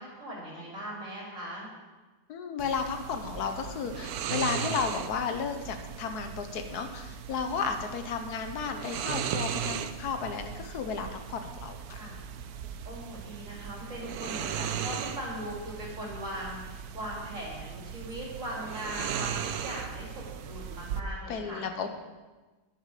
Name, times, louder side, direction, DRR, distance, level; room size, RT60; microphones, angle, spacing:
voice 1, 0.0-1.7 12.0-12.2 12.8-21.6, right 1 dB, 50° right, -5 dB, 4.1 m, -39 dB
voice 2, 2.3-12.1 21.3-22.0, left 6 dB, 80° left, 6 dB, 1.5 m, -33 dB
sound 1, 2.6-21.0, right 8 dB, 75° right, 1.1 m, -37 dB
11.0 x 10.5 x 5.0 m, 1.2 s
omnidirectional pair, 1.7 m